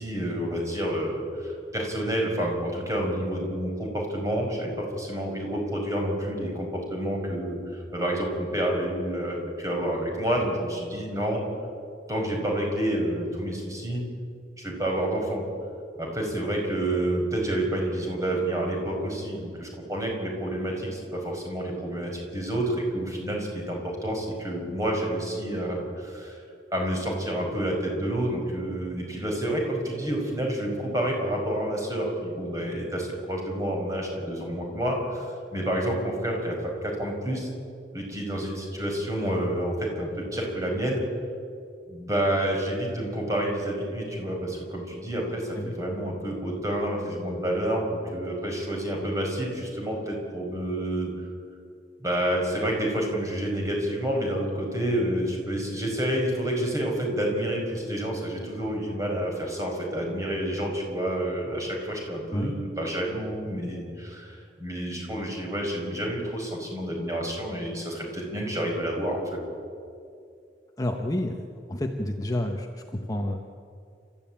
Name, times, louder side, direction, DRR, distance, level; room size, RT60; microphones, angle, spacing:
voice 1, 0.0-11.4 12.1-14.0 14.6-15.4 16.0-26.4 26.7-37.5 37.9-41.0 41.9-51.1 52.0-69.2, right 1 dB, 20° right, 0 dB, 5.4 m, -29 dB
voice 2, 70.8-73.4, left 1 dB, 20° left, 3 dB, 1.2 m, -30 dB
30.0 x 14.0 x 8.8 m, 2.4 s
head